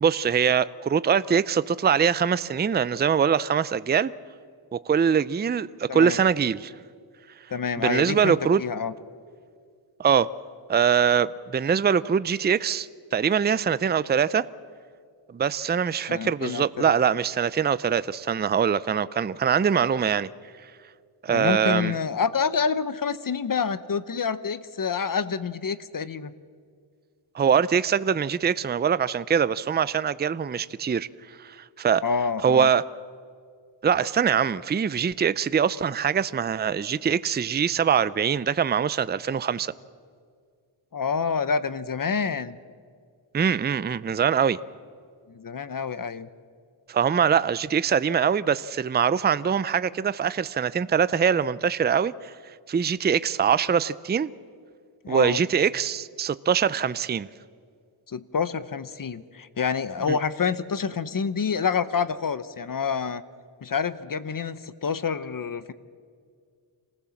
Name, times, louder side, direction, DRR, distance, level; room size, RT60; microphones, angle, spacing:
voice 1, 0.0-4.1 4.7-6.7 7.8-8.6 10.0-10.3 10.7-14.5 15.3-20.3 21.2-22.0 27.3-31.1 31.4-32.0 32.4-32.8 33.8-39.7 43.3-44.6 46.9-52.3 52.7-54.3 55.1-57.3 60.1-60.2, right 7 dB, 20° right, 17 dB, 0.5 m, -23 dB
voice 2, 7.5-8.9 16.1-16.9 21.3-26.3 32.0-32.7 40.9-42.6 45.3-46.3 55.0-55.4 58.1-63.2 63.6-65.7, left 6 dB, 40° left, 15 dB, 0.9 m, -27 dB
26.5 x 15.5 x 7.2 m, 2.1 s
cardioid pair, 75°, 48 cm